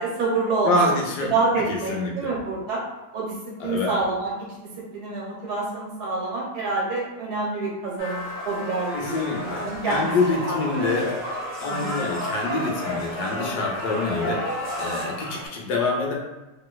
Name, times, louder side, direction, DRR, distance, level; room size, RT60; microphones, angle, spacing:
voice 1, 0.0-0.9 1.2-2.8 3.1-4.3 4.9-10.1 10.5-10.9 11.6-12.0 14.2-14.5, right 3 dB, 80° right, -4 dB, 1.4 m, -27 dB
voice 2, 0.6-1.3 1.7-2.3 3.6-3.9 8.9-11.1 11.6-16.1, left 3 dB, 80° left, -1 dB, 1.2 m, -26 dB
sound 1, 8.0-15.5, equal, 15° right, 0.9 m, -31 dB
3.1 x 2.9 x 2.2 m, 1.1 s
omnidirectional pair, 1.7 m